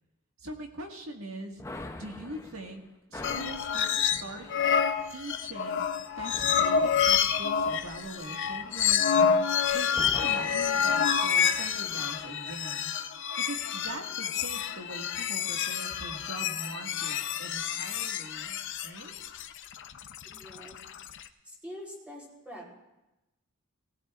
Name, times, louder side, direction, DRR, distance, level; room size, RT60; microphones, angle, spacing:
voice 1, 0.4-1.6 2.0-2.8 3.1-4.5 5.1-9.1 9.7-13.0 13.4-19.1, right 2 dB, 70° right, 2 dB, 1.8 m, -42 dB
sound 1, 1.6-9.6 9.9-12.3, left 2 dB, 15° left, 0.6 m, -46 dB
sound 2, 3.2-4.2 4.5-21.2, left 7 dB, 55° left, 0.6 m, -28 dB
voice 2, 20.2-20.8 21.4-22.7, equal, 5° right, -3 dB, 3.5 m, -45 dB
19.0 x 16.5 x 2.4 m, 0.97 s
head